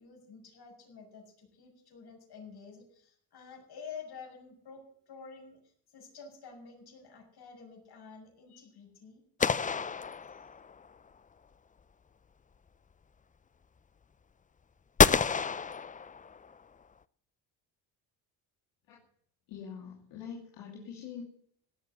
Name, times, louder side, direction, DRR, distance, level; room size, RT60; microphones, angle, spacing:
voice 1, 0.0-9.2 10.2-10.5, left 5 dB, 55° left, 2 dB, 6.8 m, -49 dB
sound 1, 9.4-10.9 15.0-16.6, left 6 dB, 20° left, 0.5 m, -28 dB
voice 2, 19.5-21.2, left 7 dB, 80° left, -2 dB, 2.9 m, -44 dB
17.5 x 7.5 x 7.9 m, 0.63 s
supercardioid pair, 75°, 45 cm